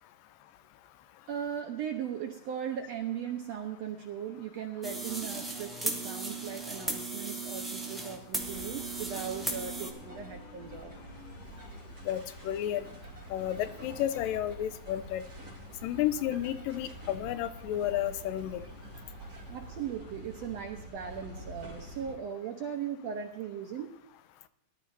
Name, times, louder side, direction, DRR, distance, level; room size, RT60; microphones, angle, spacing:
voice 1, 1.3-10.9 19.5-24.0, right 8 dB, 75° right, 3 dB, 1.6 m, -38 dB
sound 1, 4.8-9.9, right 2 dB, ahead, 1.6 m, -36 dB
sound 2, 8.4-22.1, equal, 25° right, 3.5 m, -47 dB
sound 3, 9.2-12.1, left 3 dB, 60° left, 4.3 m, -53 dB
voice 2, 12.1-12.9 13.3-15.2 15.8-18.6, left 11 dB, 85° left, 12 dB, 2.3 m, -32 dB
19.5 x 12.0 x 2.7 m, 0.85 s
omnidirectional pair, 4.0 m